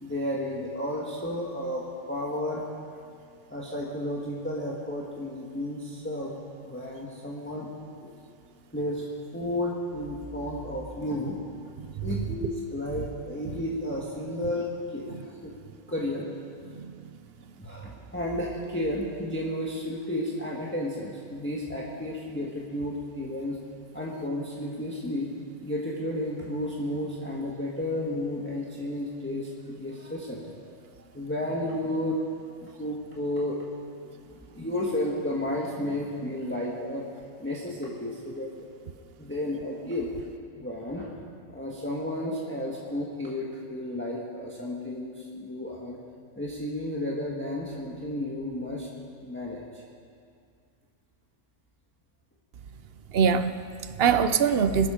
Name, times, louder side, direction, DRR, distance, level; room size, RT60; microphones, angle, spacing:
voice 1, 0.0-2.6 3.5-6.3 6.6-7.7 8.0-8.1 8.7-9.0 9.3-11.4 11.6-11.7 12.0-15.5 15.9-16.3 17.6-23.6 23.9-25.3 25.6-30.7 31.1-32.2 32.6-33.6 34.2-37.1 37.4-38.5 39.2-40.1 40.5-41.1 41.5-46.0 46.3-48.9 49.2-49.8, left 1 dB, 10° left, -4 dB, 1.5 m, -32 dB
voice 2, 53.1-54.9, right 6 dB, 55° right, 11 dB, 0.7 m, -24 dB
22.0 x 12.5 x 5.1 m, 2.3 s
omnidirectional pair, 1.5 m